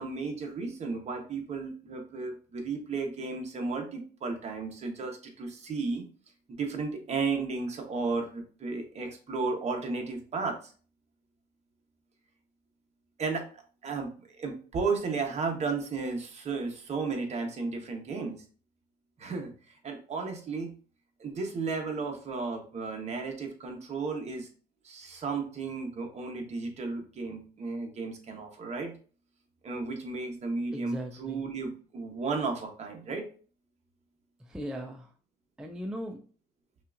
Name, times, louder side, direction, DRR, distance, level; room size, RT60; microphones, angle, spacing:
voice 1, 0.0-6.0 6.5-10.7 13.2-13.5 13.8-18.4 19.2-19.5 19.8-20.7 21.2-24.5 24.8-28.9 29.6-33.3, right 4 dB, 40° right, 3 dB, 1.0 m, -34 dB
voice 2, 30.7-31.4 34.4-35.1 35.6-36.2, equal, 5° right, 3 dB, 0.4 m, -38 dB
5.4 x 2.5 x 2.5 m, 0.40 s
cardioid pair, 110°, 17 cm